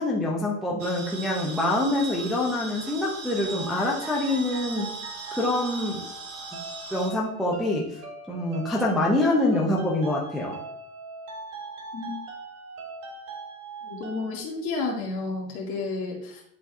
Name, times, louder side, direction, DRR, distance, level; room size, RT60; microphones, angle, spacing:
voice 1, 0.0-4.9 5.3-6.0 6.9-8.0 8.3-10.6, left 1 dB, ahead, -3 dB, 0.3 m, -25 dB
sound 1, 0.8-7.1, right 4 dB, 85° right, 1.9 m, -39 dB
sound 2, 3.5-14.4, right 3 dB, 65° right, 2.6 m, -41 dB
voice 2, 13.8-16.4, left 3 dB, 55° left, -2 dB, 2.1 m, -31 dB
10.5 x 4.0 x 2.4 m, 0.71 s
supercardioid pair, 150°, 41 cm